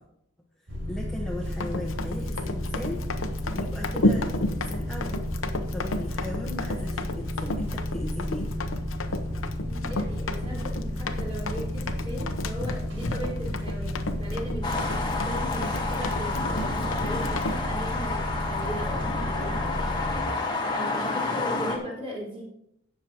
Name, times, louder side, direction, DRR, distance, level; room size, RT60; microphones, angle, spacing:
sound 1, 0.7-20.2, left 1 dB, 80° right, 4.4 m, -32 dB
voice 1, 0.9-3.0 3.5-5.2 5.7-8.5, left 1 dB, 5° left, -3 dB, 1.2 m, -37 dB
Run, 1.5-17.6, left 2 dB, 85° left, 0.9 m, -32 dB
voice 2, 9.6-20.0 20.7-22.4, equal, 30° right, -4 dB, 4.4 m, -38 dB
sound 2, 14.6-21.8, left 3 dB, 20° left, 1.4 m, -30 dB
16.5 x 6.7 x 3.0 m, 0.77 s
head